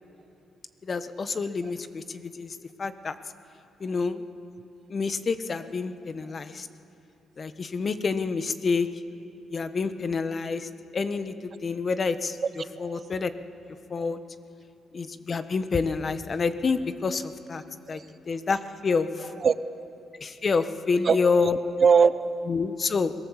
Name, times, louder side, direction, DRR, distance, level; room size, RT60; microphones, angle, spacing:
voice 1, 0.8-3.1 3.8-4.2 4.9-6.7 7.4-8.9 9.5-12.4 12.8-13.3 13.9-14.2 14.9-17.6 17.9-18.0 18.3-19.3 20.2-21.6 22.5-23.1, left 4 dB, 40° left, 11 dB, 1.1 m, -28 dB
voice 2, 12.8-13.1 14.0-14.1 14.9-15.1 17.9-18.1 19.4-19.8 21.0-21.5 21.8-22.5, right 6 dB, 45° right, 15 dB, 0.6 m, -23 dB
25.0 x 18.5 x 7.4 m, 2.8 s
cardioid pair, 90°, 0 cm